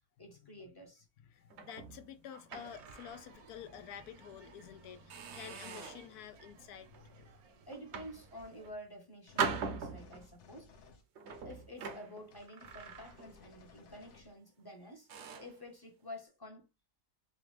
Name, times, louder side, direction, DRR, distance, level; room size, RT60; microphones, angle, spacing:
voice 1, 0.2-1.1 7.7-10.7 11.4-15.1 15.4-16.7, left 1 dB, 20° left, 0.8 m, -50 dB
voice 2, 1.3-7.5, left 9 dB, 80° left, 1.1 m, -50 dB
sound 1, 1.5-3.3 3.7-3.9 4.5-4.6 5.1-6.1 6.7-7.0 7.7-8.8 9.4-10.4 11.2-13.5 13.8-14.1 14.6-14.7 15.1-15.6, right 5 dB, 60° right, 0.8 m, -41 dB
sound 2, 2.5-8.7, right 3 dB, 75° right, 1.2 m, -59 dB
sound 3, 9.3-9.6 10.0-11.5 11.8-12.0 12.3-14.3, left 4 dB, 60° left, 0.9 m, -59 dB
4.3 x 2.4 x 3.2 m
omnidirectional pair, 1.6 m